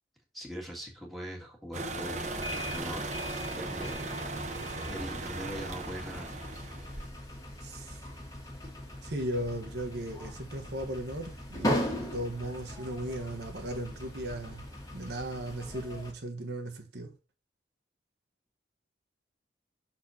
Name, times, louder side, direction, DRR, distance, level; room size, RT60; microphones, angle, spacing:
voice 1, 0.3-4.0 4.9-6.3, equal, ahead, 2.0 m, -42 dB
sound 1, 1.7-7.1, right 2 dB, 40° right, 0.9 m, -37 dB
sound 2, 2.2-16.1, left 1 dB, 20° left, 1.8 m, -39 dB
voice 2, 7.6-8.0 9.0-14.6 14.9-17.1, right 1 dB, 65° right, 1.2 m, -37 dB
6.3 x 4.3 x 4.3 m
head